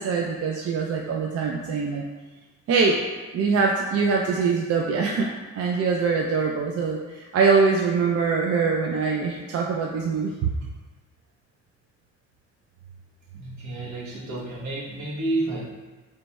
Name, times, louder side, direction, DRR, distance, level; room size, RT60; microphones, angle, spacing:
voice 1, 0.0-2.1 2.7-3.0 3.3-10.5, right 5 dB, 50° right, 0 dB, 0.4 m, -23 dB
voice 2, 13.3-15.7, right 2 dB, 70° right, -4 dB, 1.1 m, -30 dB
3.3 x 2.2 x 4.0 m, 1.3 s
cardioid pair, 90°, 30 cm